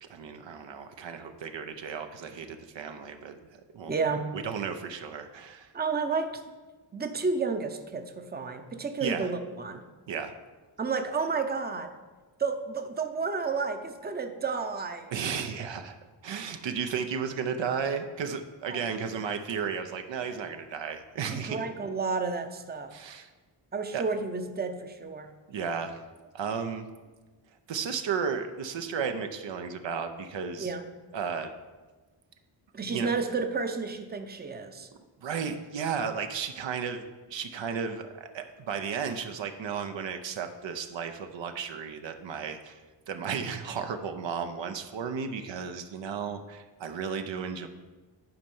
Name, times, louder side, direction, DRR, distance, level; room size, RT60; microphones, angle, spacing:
voice 1, 0.0-3.3 3.7-3.9 4.3-5.7 9.0-9.3 10.1-10.3 15.1-15.9 16.2-21.6 22.9-23.3 23.9-24.0 25.5-26.9 27.7-30.7 31.1-31.5 32.8-33.1 35.2-42.8 43.1-47.7, right 6 dB, 75° right, 6 dB, 0.8 m, -34 dB
voice 2, 3.9-4.3 5.7-6.4 6.9-9.8 10.8-11.9 12.4-15.1 18.7-18.8 19.1-19.3 21.3-22.9 23.7-25.3 30.6-30.8 32.7-34.9, right 4 dB, 20° right, 7 dB, 0.7 m, -31 dB
10.5 x 4.4 x 5.5 m, 1.3 s
cardioid pair, 80°, 45 cm